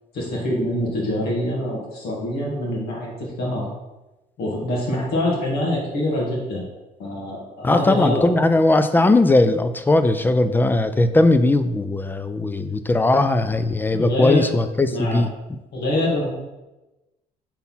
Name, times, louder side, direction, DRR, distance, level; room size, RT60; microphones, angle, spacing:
voice 1, 0.1-3.7 4.4-6.7 7.0-8.3 13.9-14.5 14.9-15.2 15.7-16.3, left 1 dB, 70° left, -3 dB, 2.0 m, -25 dB
voice 2, 7.6-15.3, left 2 dB, 10° left, 10 dB, 0.4 m, -18 dB
4.2 x 4.1 x 5.6 m, 1.0 s
cardioid pair, 110°, 17 cm